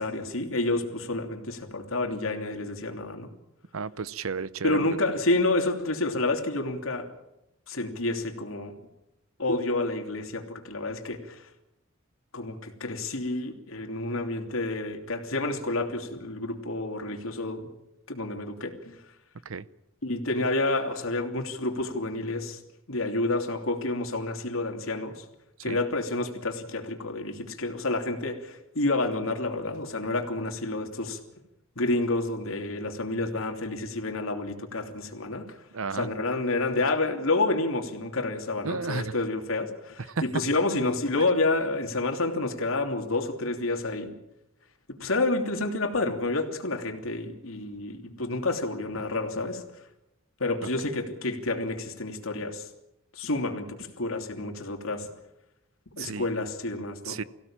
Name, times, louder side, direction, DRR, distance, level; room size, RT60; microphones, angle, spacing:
voice 1, 0.0-3.3 4.6-7.1 7.7-8.8 9.4-11.4 12.3-17.7 18.1-19.0 20.0-22.6 22.9-25.2 25.6-31.2 31.8-35.6 35.9-44.1 44.9-49.6 50.4-52.7 53.1-55.1 56.0-57.2, left 2 dB, 80° left, 4 dB, 3.0 m, -29 dB
voice 2, 3.7-4.9 19.4-19.7 25.7-25.8 35.7-36.1 38.6-39.1 40.1-40.2 56.0-56.3 57.0-57.2, right 4 dB, 85° right, 17 dB, 0.8 m, -32 dB
24.0 x 16.5 x 8.9 m, 0.89 s
head